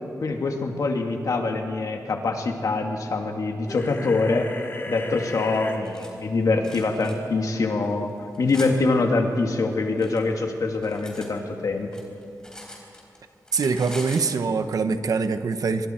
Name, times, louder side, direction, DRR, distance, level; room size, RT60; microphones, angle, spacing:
voice 1, 0.2-4.5 4.9-8.1 8.4-11.9, left 3 dB, 65° left, 3 dB, 2.2 m, -24 dB
sound 1, 3.7-5.8, left 2 dB, 35° left, 2.0 m, -35 dB
Cutlery silverware, 5.5-6.1 6.6-7.1 7.8-8.7 9.6-11.3 11.6-13.2 13.4-14.3, left 1 dB, 10° left, 3.8 m, -42 dB
voice 2, 13.5-15.9, right 4 dB, 75° right, 9 dB, 1.1 m, -24 dB
25.0 x 22.5 x 4.5 m, 2.8 s
wide cardioid pair, 150°, 6 cm